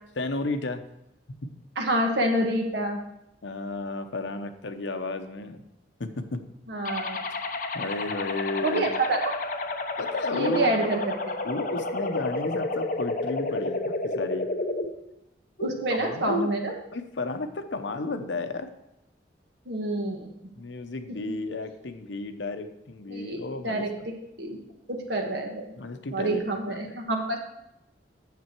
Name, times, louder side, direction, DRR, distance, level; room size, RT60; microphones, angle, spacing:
voice 1, 0.2-0.8 1.4-1.5 3.4-5.6 6.0-6.4 7.7-8.9 10.0-10.9 11.4-14.5 15.6-16.5 16.9-18.7 20.6-24.1 25.7-26.9, left 2 dB, 75° left, 8 dB, 0.8 m, -33 dB
voice 2, 1.8-3.0 6.7-7.2 8.6-9.3 10.3-11.3 15.6-16.7 19.6-20.3 23.1-23.9 24.4-24.6 24.9-25.7 26.1-27.4, right 1 dB, 65° right, 2 dB, 1.5 m, -27 dB
sound 1, 6.8-14.8, left 2 dB, 45° left, 0.8 m, -31 dB
9.3 x 7.5 x 4.5 m, 0.87 s
head